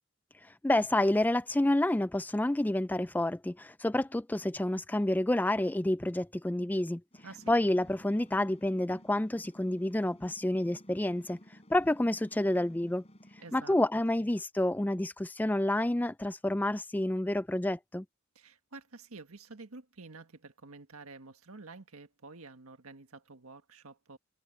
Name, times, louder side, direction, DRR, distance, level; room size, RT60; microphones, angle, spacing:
voice 1, 0.6-7.0 7.5-11.4 11.7-13.0 13.5-18.0, left 1 dB, 10° left, 0.3 m, -29 dB
sound 1, 7.1-13.6, equal, 30° left, 4.7 m, -56 dB
voice 2, 7.2-7.5 13.4-13.8 14.2-14.3 18.3-24.2, right 3 dB, 90° right, 1.7 m, -49 dB
head